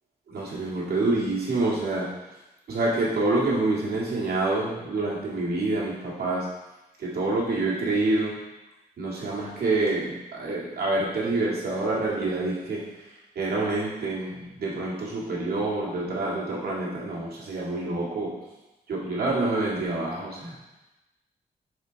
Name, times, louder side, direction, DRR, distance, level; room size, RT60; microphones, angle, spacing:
voice 1, 0.3-2.1 2.7-6.5 7.0-8.3 9.0-12.8 13.4-18.4 18.9-20.5, right 2 dB, 85° right, -5 dB, 2.0 m, -27 dB
6.6 x 4.4 x 5.1 m, 1.0 s
wide cardioid pair, 175°, 16 cm